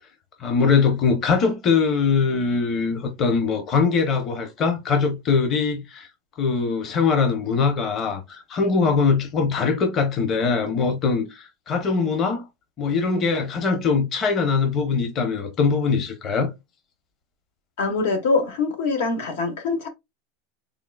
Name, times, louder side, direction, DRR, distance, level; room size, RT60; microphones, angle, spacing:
voice 1, 0.4-6.1 6.4-12.5 12.8-16.5, left 5 dB, 30° left, 0.9 m, -22 dB
voice 2, 17.8-19.9, left 4 dB, 80° left, 1.3 m, -23 dB
3.8 x 3.7 x 2.3 m
supercardioid pair, 140°, 0 cm